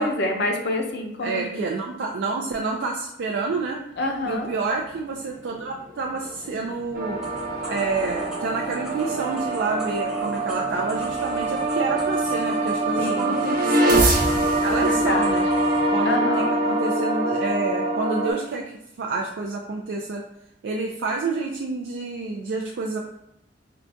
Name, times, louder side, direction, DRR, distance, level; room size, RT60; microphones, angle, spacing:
voice 1, 0.0-1.7 4.0-4.5 13.0-13.4 14.7-15.4 16.1-16.5, left 1 dB, 65° left, 3 dB, 0.5 m, -27 dB
voice 2, 1.2-3.8 4.2-7.2 7.7-14.1 14.6-15.4 15.9-16.2 16.6-18.7 19.0-20.2 20.6-23.0, right 3 dB, 70° right, 0 dB, 0.4 m, -28 dB
sound 1, 3.2-18.2, left 1 dB, 90° right, 1.2 m, -44 dB
sound 2, 6.9-18.3, right 1 dB, 50° right, 0.8 m, -24 dB
sound 3, 7.2-15.9, right 1 dB, 5° right, 0.6 m, -42 dB
4.6 x 2.2 x 2.5 m, 0.81 s
head